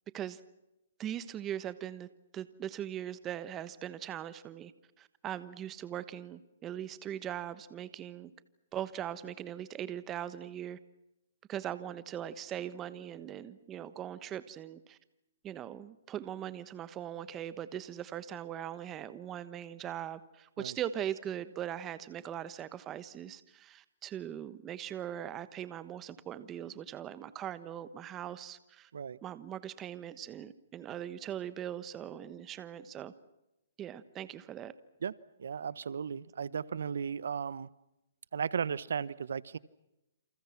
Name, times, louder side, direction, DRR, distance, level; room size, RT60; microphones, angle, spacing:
voice 1, 1.0-4.7 5.0-8.3 8.7-10.8 11.5-15.0 15.4-28.9 29.2-33.1 33.8-34.7, right 10 dB, 15° right, 15 dB, 1.2 m, -40 dB
voice 2, 35.4-37.7 38.3-39.6, right 7 dB, 75° right, 20 dB, 1.0 m, -35 dB
29.0 x 28.0 x 5.9 m, 0.90 s
hypercardioid pair, 165°, 0 cm